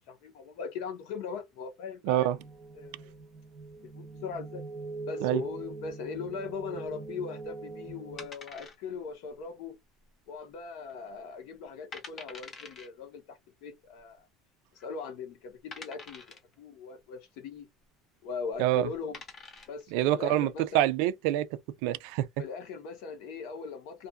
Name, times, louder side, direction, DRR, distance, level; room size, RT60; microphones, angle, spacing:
voice 1, 0.1-2.3 2.7-3.1 3.9-4.6 5.1-9.8 10.3-14.2 14.8-16.2 16.6-17.7 18.2-19.2 19.7-20.9 22.4-24.1, left 5 dB, 65° left, 0.9 m, -40 dB
voice 2, 2.1-2.4 5.2-5.4 18.6-18.9 19.9-21.5 21.8-22.3, right 13 dB, 65° right, 0.3 m, -26 dB
sound 1, 2.4-8.3, right 3 dB, 30° right, 0.7 m, -42 dB
sound 2, 8.2-9.1 9.4-9.5 10.1-10.5 10.9-11.0 11.6-11.7 11.9-12.9 14.0-14.1 14.8-14.9 15.7-16.5 18.4-18.6 18.9-19.8, left 4 dB, 25° left, 0.7 m, -46 dB
2.5 x 2.4 x 2.3 m
cardioid pair, 155°, 0 cm